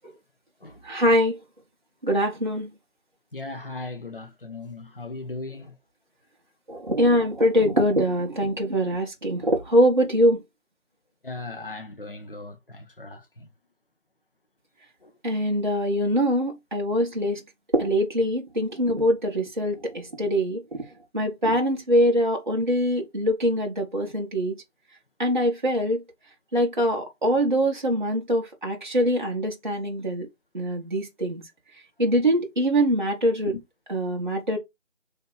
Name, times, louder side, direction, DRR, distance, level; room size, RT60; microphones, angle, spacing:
voice 1, 0.8-1.4 2.0-2.7 6.7-10.4 15.2-17.4 17.7-20.8 21.1-24.6 25.2-26.0 26.5-30.3 30.5-31.4 32.0-33.5 33.9-34.6, equal, 35° right, 0.8 m, -23 dB
voice 2, 3.3-5.8 11.2-13.5 15.0-15.1 33.4-33.6, left 3 dB, 45° left, 0.6 m, -37 dB
3.4 x 2.7 x 3.7 m
figure-of-eight pair, 170°, 41 cm